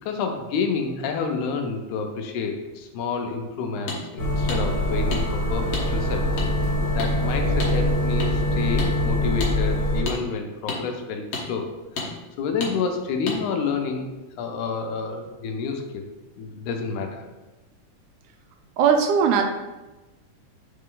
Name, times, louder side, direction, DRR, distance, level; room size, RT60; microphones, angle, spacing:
voice 1, 0.0-6.3 6.9-11.7 12.0-14.1 14.4-16.1 16.4-17.2, left 5 dB, 80° left, 4 dB, 2.0 m, -29 dB
sound 1, 3.9-4.0 4.5-4.6 5.1-5.2 5.7-5.9 6.4-6.5 7.0-7.1 7.6-7.7 8.2-8.3 8.8-8.9 9.4-9.5 10.1-10.2 10.7-10.8 11.3-11.4 12.0-12.1 12.6-12.7 13.3-13.4, left 3 dB, 65° left, 1.9 m, -30 dB
sound 2, 4.2-10.0, left 1 dB, 20° left, 0.8 m, -23 dB
voice 2, 18.8-19.4, right 7 dB, 80° right, 4 dB, 1.9 m, -18 dB
5.8 x 4.3 x 3.7 m, 1.1 s
omnidirectional pair, 3.6 m